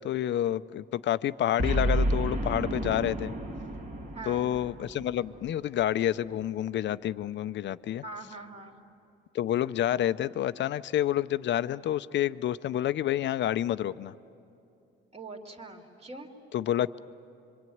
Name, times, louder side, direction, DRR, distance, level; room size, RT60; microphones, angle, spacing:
voice 1, 0.0-3.3 4.3-8.0 9.3-14.1 16.5-17.0, left 11 dB, 65° left, 14 dB, 0.6 m, -29 dB
Boom, 1.6-6.0, right 1 dB, 45° right, 2.5 m, -31 dB
voice 2, 4.1-4.5 8.0-8.8 15.1-16.3, right 3 dB, 30° right, 2 dB, 2.7 m, -43 dB
26.0 x 24.5 x 9.4 m, 2.6 s
cardioid pair, 90°, 20 cm